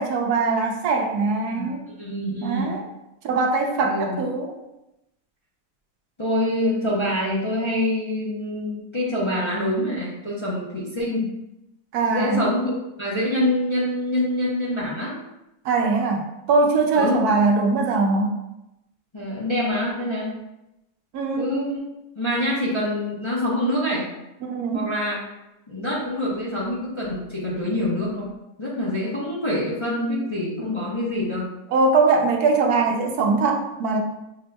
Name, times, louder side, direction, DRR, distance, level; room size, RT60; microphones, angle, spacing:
voice 1, 0.0-1.8 2.4-2.9 3.2-4.5 11.9-12.4 15.6-18.4 21.1-21.6 24.4-24.9 31.7-34.0, right 3 dB, 90° right, 2 dB, 1.2 m, -21 dB
voice 2, 1.4-2.8 3.8-4.2 6.2-11.3 12.1-15.2 16.9-17.2 19.1-20.3 21.4-21.8 22.2-24.1 24.7-25.2 25.7-28.3 28.6-31.5, left 1 dB, 25° left, -7 dB, 0.6 m, -25 dB
6.0 x 2.8 x 2.2 m, 0.90 s
omnidirectional pair, 1.6 m